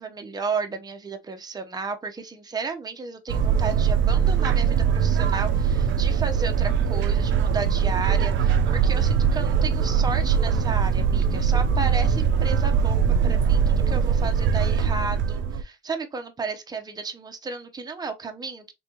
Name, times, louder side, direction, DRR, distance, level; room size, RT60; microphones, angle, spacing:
voice 1, 0.0-18.7, right 4 dB, 20° right, 0.7 m, -33 dB
sound 1, 3.3-15.6, right 7 dB, 65° right, 0.6 m, -21 dB
3.4 x 3.3 x 2.9 m
cardioid pair, 105°, 21 cm